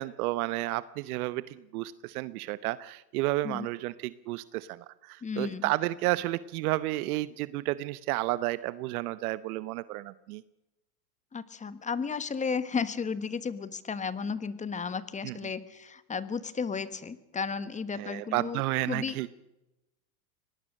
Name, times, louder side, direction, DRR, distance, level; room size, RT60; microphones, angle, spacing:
voice 1, 0.0-10.4 15.2-15.4 17.9-19.3, right 18 dB, 65° right, 17 dB, 1.0 m, -32 dB
voice 2, 5.2-5.7 11.3-18.6 18.9-19.2, left 5 dB, 15° left, 15 dB, 1.3 m, -33 dB
24.5 x 19.0 x 6.5 m, 0.92 s
supercardioid pair, 125°, 48 cm